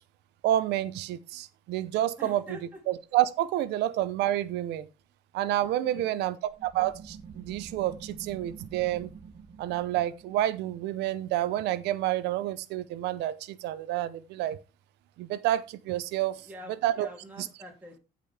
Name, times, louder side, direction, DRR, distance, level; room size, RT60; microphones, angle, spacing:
voice 1, 0.4-2.6 2.9-4.9 5.3-9.1 9.6-14.6 15.2-16.4 16.8-17.1 17.4-17.5, right 13 dB, 85° right, 0.7 m, -29 dB
voice 2, 2.2-2.8 5.8-6.2 16.4-18.0, equal, 10° right, 2.8 m, -46 dB
sound 1, 6.5-11.8, right 6 dB, 40° right, 1.4 m, -47 dB
15.0 x 5.3 x 3.4 m
cardioid pair, 110°, 17 cm